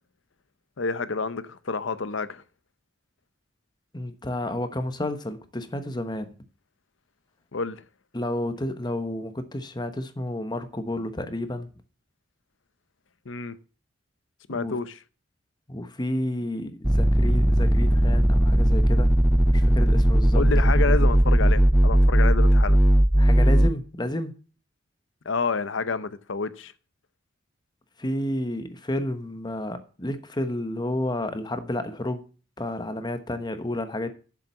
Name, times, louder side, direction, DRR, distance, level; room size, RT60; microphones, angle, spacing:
voice 1, 0.8-2.4 7.5-7.8 13.3-13.5 14.5-15.0 20.3-22.8 25.3-26.7, left 4 dB, 80° left, 0.8 m, -29 dB
voice 2, 3.9-6.3 8.1-11.7 14.5-14.8 15.7-19.1 19.5-20.4 23.2-24.3 28.0-32.3 32.6-34.1, left 1 dB, 20° left, 1.1 m, -31 dB
sound 1, 16.8-23.7, equal, 5° right, 0.4 m, -18 dB
7.6 x 7.4 x 6.8 m
head